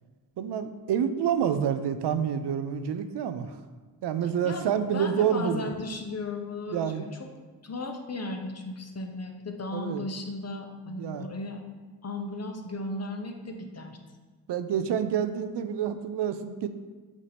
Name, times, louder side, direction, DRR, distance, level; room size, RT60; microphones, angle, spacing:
voice 1, 0.4-3.5 4.0-5.7 6.7-7.1 9.7-10.0 11.0-11.2 14.5-16.7, right 8 dB, 80° right, 10 dB, 0.6 m, -28 dB
voice 2, 4.2-7.3 7.6-11.6 12.0-14.0, left 2 dB, 40° left, 4 dB, 0.9 m, -36 dB
8.2 x 2.8 x 5.1 m, 1.4 s
cardioid pair, 75°, 40 cm